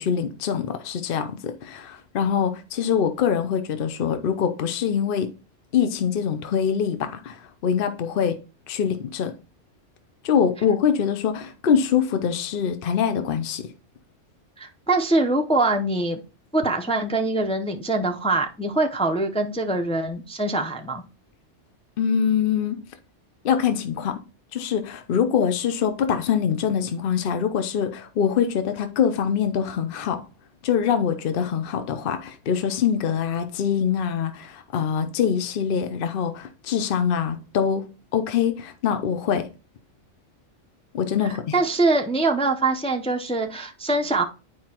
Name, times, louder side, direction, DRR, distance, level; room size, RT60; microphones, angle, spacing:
voice 1, 0.0-5.3 5.7-8.4 8.7-9.3 10.2-13.6 22.0-22.8 23.4-24.2 24.5-30.2 30.6-37.9 38.1-39.5 40.9-41.6, left 7 dB, 55° left, 0.8 m, -24 dB
voice 2, 14.6-16.2 16.5-21.0 41.5-44.2, right 2 dB, 10° left, 0.3 m, -23 dB
9.4 x 4.7 x 2.9 m
omnidirectional pair, 1.2 m